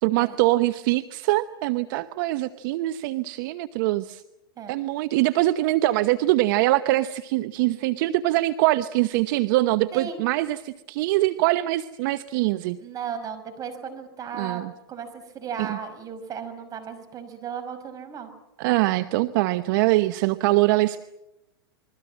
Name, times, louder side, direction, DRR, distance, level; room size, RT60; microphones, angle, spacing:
voice 1, 0.0-4.2 4.7-12.8 14.4-14.7 15.6-15.8 18.6-21.0, right 17 dB, 55° right, 13 dB, 0.9 m, -23 dB
voice 2, 9.9-10.2 12.8-18.3, right 7 dB, 30° right, 8 dB, 5.8 m, -35 dB
29.0 x 22.0 x 7.6 m, 0.92 s
hypercardioid pair, 120°, 13 cm